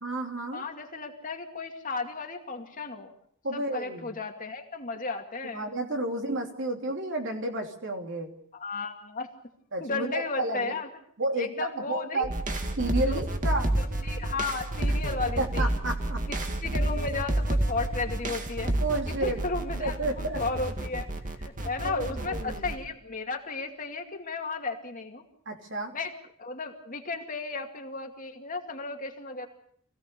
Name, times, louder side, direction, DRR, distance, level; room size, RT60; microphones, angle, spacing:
voice 1, 0.0-0.6 3.4-4.1 5.4-8.3 9.7-10.8 11.2-12.3 12.8-13.7 15.4-16.2 18.8-19.4 19.8-20.4 21.8-22.7 25.4-25.9, right 2 dB, 55° right, 3 dB, 3.1 m, -31 dB
voice 2, 0.5-3.1 3.5-5.7 8.5-9.3 9.8-10.9 11.4-12.3 13.0-13.2 13.7-15.8 16.3-16.4 16.6-18.7 19.1-21.1 21.4-25.3 25.9-26.1 26.4-29.5, left 3 dB, 40° left, 3 dB, 2.4 m, -34 dB
sound 1, 12.2-22.7, right 1 dB, 35° right, 2.1 m, -30 dB
25.5 x 17.0 x 6.9 m, 0.64 s
head